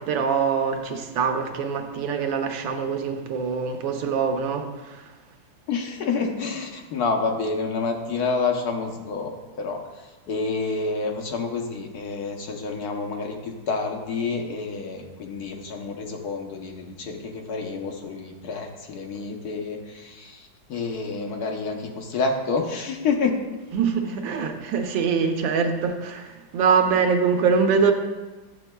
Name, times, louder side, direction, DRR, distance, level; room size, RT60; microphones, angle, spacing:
voice 1, 0.0-5.0 23.7-27.9, right 6 dB, 90° right, 4 dB, 1.5 m, -24 dB
voice 2, 5.7-9.3 9.6-23.4, left 4 dB, 65° left, 2 dB, 1.2 m, -28 dB
10.5 x 7.1 x 2.2 m, 1.2 s
omnidirectional pair, 2.0 m